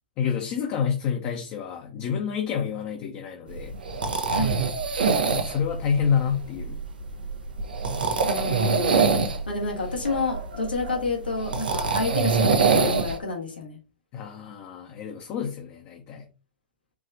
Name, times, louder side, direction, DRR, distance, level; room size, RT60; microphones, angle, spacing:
voice 1, 0.2-3.7 5.3-6.8 14.1-16.2, left 7 dB, 40° left, 0.8 m, -28 dB
sound 1, 3.5-13.2, right 4 dB, 75° right, 0.8 m, -25 dB
voice 2, 4.3-4.6 8.3-9.2 9.5-13.8, left 3 dB, 80° left, 1.5 m, -29 dB
4.6 x 3.2 x 2.6 m
figure-of-eight pair, 105°, 5 cm